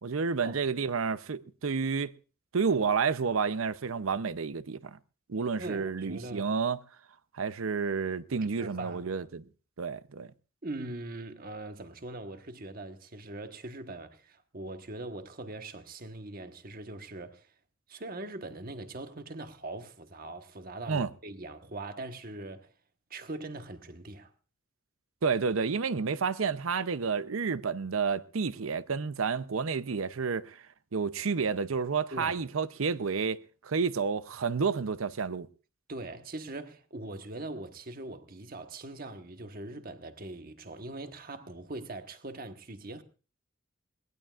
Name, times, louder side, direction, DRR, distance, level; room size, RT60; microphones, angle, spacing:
voice 1, 0.0-2.1 2.5-5.0 5.3-6.8 7.3-9.4 9.8-10.3 20.9-21.1 25.2-30.6 30.9-35.5, right 5 dB, 80° right, 0.6 m, -30 dB
voice 2, 5.6-6.5 8.6-9.0 10.6-17.5 17.9-22.7 23.1-24.3 32.1-32.4 35.9-43.0, right 2 dB, 45° right, 1.2 m, -41 dB
21.5 x 18.0 x 2.4 m
head